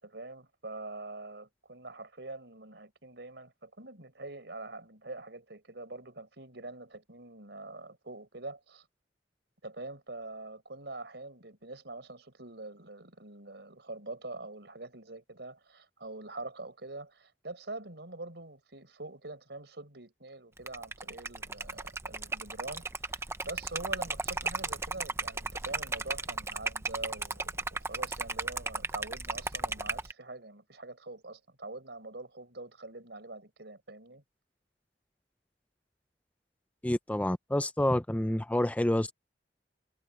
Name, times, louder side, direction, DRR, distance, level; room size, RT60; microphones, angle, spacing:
voice 1, 0.0-8.9 9.6-34.2, right 2 dB, 70° right, 5.9 m, -44 dB
Liquid, 20.6-30.1, right 3 dB, 15° right, 0.8 m, -35 dB
voice 2, 36.8-39.1, left 1 dB, 10° left, 0.5 m, -28 dB
head